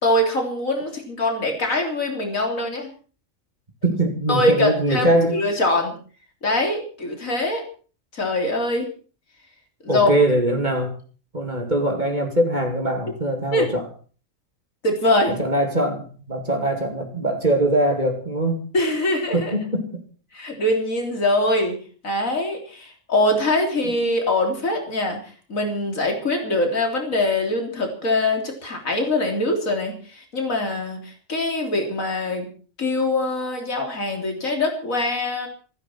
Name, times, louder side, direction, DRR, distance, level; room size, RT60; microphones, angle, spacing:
voice 1, 0.0-2.9 4.3-5.9 6.4-7.6 8.1-8.9 9.8-10.1 13.5-13.7 14.8-15.3 18.7-19.5 20.3-21.8 22.0-25.2 25.5-32.5 32.8-35.5, left 1 dB, 85° left, 2 dB, 3.8 m, -23 dB
voice 2, 3.8-5.4 9.9-10.9 11.3-13.9 15.3-18.6 19.3-20.0, right 1 dB, 35° right, 2 dB, 2.8 m, -22 dB
27.0 x 10.5 x 4.5 m, 0.40 s
omnidirectional pair, 1.4 m